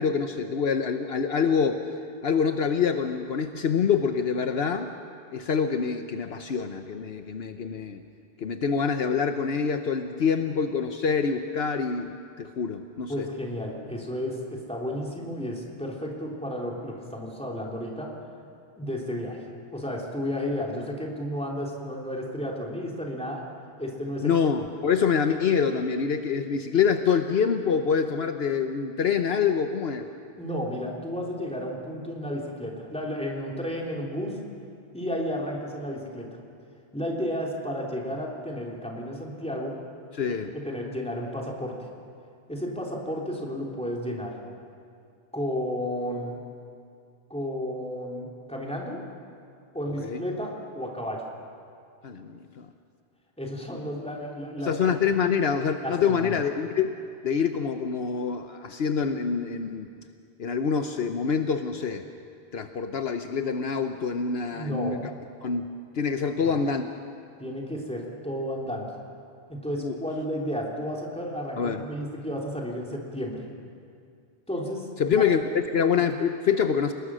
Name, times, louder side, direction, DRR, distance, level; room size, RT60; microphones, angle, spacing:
voice 1, 0.0-1.8 2.2-4.9 5.3-8.0 8.4-13.3 24.2-30.1 40.1-40.5 49.9-50.2 52.0-52.7 54.6-56.9 57.2-59.9 60.4-62.1 62.5-65.1 65.4-66.8 69.8-70.0 71.6-71.8 75.0-76.9, left 6 dB, 65° left, 7 dB, 1.1 m, -26 dB
voice 2, 13.1-18.1 18.8-19.4 19.7-23.4 23.8-24.3 30.4-34.4 34.9-36.4 36.9-39.8 40.5-41.8 42.5-44.4 45.3-46.4 47.3-49.0 49.7-51.3 53.4-55.0 55.8-56.4 64.5-65.0 66.3-66.6 67.4-68.9 69.5-73.4 74.5-75.2, equal, 5° left, -2 dB, 3.3 m, -32 dB
29.5 x 20.0 x 6.3 m, 2.4 s
omnidirectional pair, 1.1 m